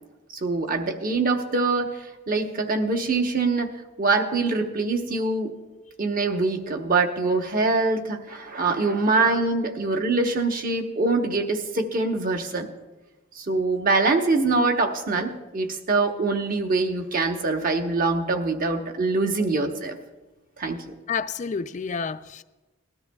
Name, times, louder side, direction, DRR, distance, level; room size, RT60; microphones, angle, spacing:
voice 1, 0.4-2.0 2.3-3.7 4.0-5.5 6.0-12.7 13.4-19.9 20.6-20.8, right 3 dB, 45° right, 4 dB, 1.0 m, -24 dB
voice 2, 21.1-22.4, left 5 dB, 35° left, 12 dB, 0.4 m, -29 dB
19.5 x 13.0 x 2.3 m, 1.1 s
head